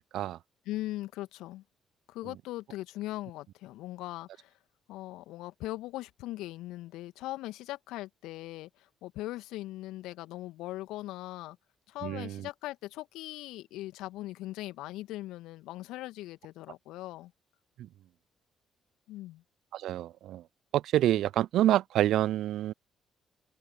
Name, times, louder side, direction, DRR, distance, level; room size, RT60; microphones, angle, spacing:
voice 1, 0.7-1.6 2.1-4.5 4.9-11.6 11.9-17.3 19.1-19.4, left 16 dB, 70° left, 2.0 m, -40 dB
voice 2, 12.0-12.5 17.8-17.9 19.7-20.4 20.7-22.7, right 13 dB, 60° right, 0.6 m, -27 dB
figure-of-eight pair, 45°, 0 cm